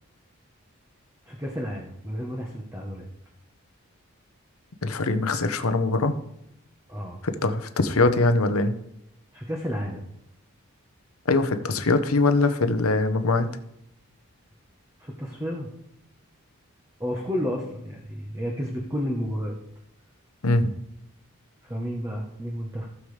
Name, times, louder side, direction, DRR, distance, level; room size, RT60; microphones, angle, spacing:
voice 1, 1.2-3.1 6.9-7.2 9.3-10.0 15.0-15.7 17.0-19.6 21.6-22.9, equal, 15° right, -1 dB, 1.0 m, -31 dB
voice 2, 4.8-6.1 7.2-8.7 11.3-13.5 20.4-20.7, left 3 dB, 80° left, 9 dB, 0.9 m, -22 dB
15.5 x 7.0 x 3.3 m, 0.80 s
head